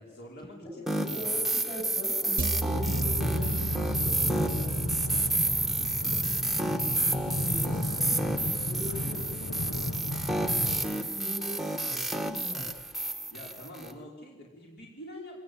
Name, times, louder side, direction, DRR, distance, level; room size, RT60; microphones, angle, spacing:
voice 1, 0.0-1.1 8.8-9.4 13.3-15.4, left 1 dB, 50° left, -2 dB, 5.3 m, -46 dB
voice 2, 0.6-5.3 6.4-9.3 9.9-12.7, equal, 20° left, 2 dB, 8.0 m, -41 dB
sound 1, 0.9-13.9, right 2 dB, ahead, 1.5 m, -30 dB
sound 2, 2.4-6.7, right 2 dB, 45° right, 1.0 m, -35 dB
sound 3, 2.7-10.8, left 1 dB, 80° left, 1.9 m, -33 dB
24.0 x 20.0 x 9.7 m, 1.2 s
head